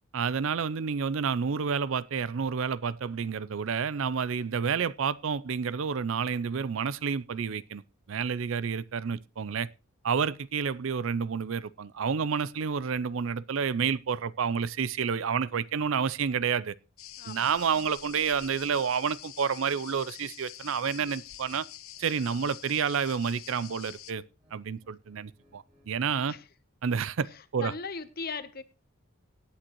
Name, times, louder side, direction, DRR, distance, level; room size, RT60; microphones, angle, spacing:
voice 1, 0.1-7.8 8.1-9.7 10.0-16.7 17.3-21.7 22.0-24.2 24.5-26.4 26.8-27.7, right 6 dB, 70° right, 0.5 m, -29 dB
sound 1, 17.0-24.1, left 13 dB, 85° left, 0.7 m, -46 dB
voice 2, 17.2-17.5 26.3-26.4 27.3-28.6, left 4 dB, 45° left, 0.9 m, -38 dB
sound 2, 21.3-21.6 21.9-23.1 23.3-24.0 24.3-26.2, right 1 dB, 25° right, 5.5 m, -63 dB
17.5 x 8.7 x 3.0 m
head